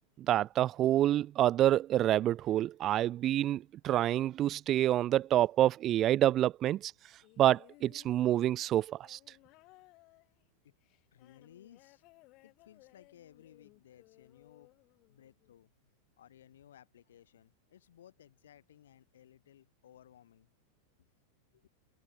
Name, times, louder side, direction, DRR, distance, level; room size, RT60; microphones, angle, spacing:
voice 1, 0.2-6.9 7.4-9.2, right 12 dB, 35° right, 0.4 m, -27 dB
sound 1, 7.2-15.6 16.6-16.7, left 22 dB, 45° left, 3.1 m, -62 dB
voice 2, 11.1-12.0 12.4-14.7 15.1-20.5 21.0-21.1 21.5-21.7, left 10 dB, 85° left, 7.8 m, -59 dB
hypercardioid pair, 125°, 0 cm